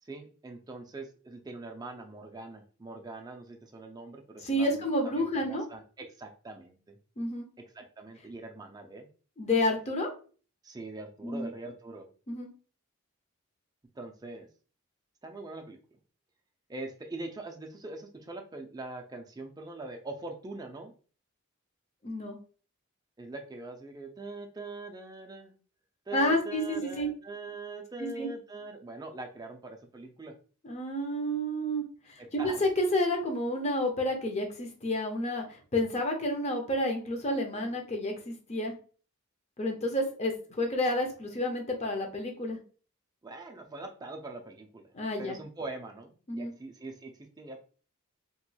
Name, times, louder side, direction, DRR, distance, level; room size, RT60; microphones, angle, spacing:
voice 1, 0.0-7.0 7.7-9.1 10.6-12.1 14.0-14.5 15.2-15.8 16.7-20.9 23.2-25.6 26.1-30.3 32.2-32.7 43.2-44.9 45.2-47.6, right 2 dB, 20° right, 3 dB, 0.4 m, -42 dB
voice 2, 4.4-5.6 7.2-7.5 9.4-10.1 11.2-11.5 12.3-12.5 22.0-22.4 26.1-27.1 28.0-28.3 30.6-31.8 32.3-38.7 39.6-42.6 44.9-45.4 46.3-46.5, left 1 dB, 30° left, 2 dB, 0.6 m, -30 dB
2.9 x 2.9 x 2.2 m, 0.40 s
head